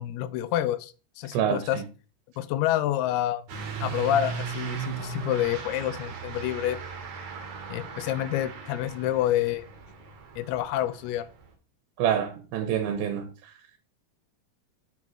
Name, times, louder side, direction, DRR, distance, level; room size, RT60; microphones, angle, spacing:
voice 1, 0.0-1.8 2.4-3.4 3.8-6.8 7.7-9.7 10.4-11.3, left 12 dB, 90° left, 2.6 m, -28 dB
Truck / Accelerating revving vroom, 3.5-11.5, right 6 dB, 65° right, 2.2 m, -37 dB
voice 2, 12.0-13.3, right 9 dB, 80° right, 2.6 m, -26 dB
7.2 x 5.4 x 3.0 m
omnidirectional pair, 4.4 m